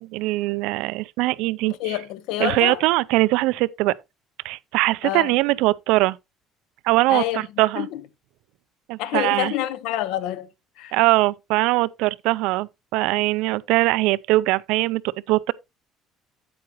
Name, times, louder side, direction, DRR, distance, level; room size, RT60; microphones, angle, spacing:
voice 1, 0.0-2.0 2.4-4.0 4.4-6.2 6.8-7.9 8.9-9.5 10.9-15.5, right 20 dB, 90° right, 0.4 m, -21 dB
voice 2, 1.6-2.8 5.0-5.4 7.1-7.4 7.7-8.0 9.0-10.5 10.8-11.0, left 13 dB, 75° left, 0.8 m, -27 dB
8.7 x 8.6 x 2.9 m
cardioid pair, 180°, 0 cm